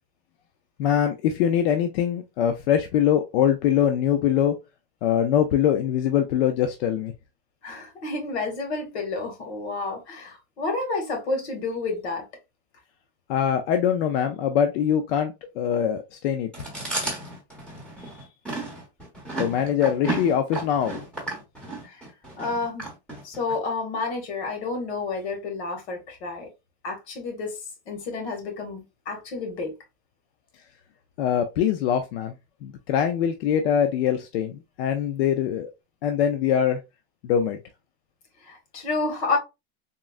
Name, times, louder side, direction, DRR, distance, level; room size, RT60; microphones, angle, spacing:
voice 1, 0.8-4.6 5.0-7.1 13.3-16.5 18.2-18.3 19.4-21.0 31.2-32.3 32.6-35.7 36.0-36.8 37.2-37.6, left 9 dB, 65° left, 0.5 m, -23 dB
voice 2, 7.6-12.2 21.8-22.0 22.4-22.8 23.2-26.5 26.8-27.6 27.9-29.7 38.4-39.4, left 3 dB, 85° left, 1.6 m, -30 dB
Chewing mastication, 16.5-23.6, right 2 dB, 5° left, 1.0 m, -33 dB
3.7 x 2.1 x 2.3 m
supercardioid pair, 160°, 32 cm